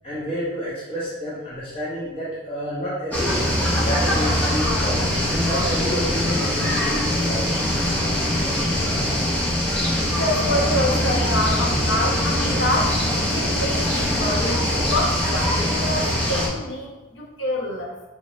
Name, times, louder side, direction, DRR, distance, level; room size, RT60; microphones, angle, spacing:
voice 1, 0.0-3.4 3.8-7.5, equal, 25° left, -10 dB, 1.1 m, -29 dB
sound 1, 3.1-16.5, left 1 dB, 5° left, 0.7 m, -22 dB
voice 2, 10.1-13.0 13.3-17.9, left 1 dB, 70° left, -2 dB, 1.0 m, -26 dB
5.2 x 2.8 x 3.1 m, 1.1 s
head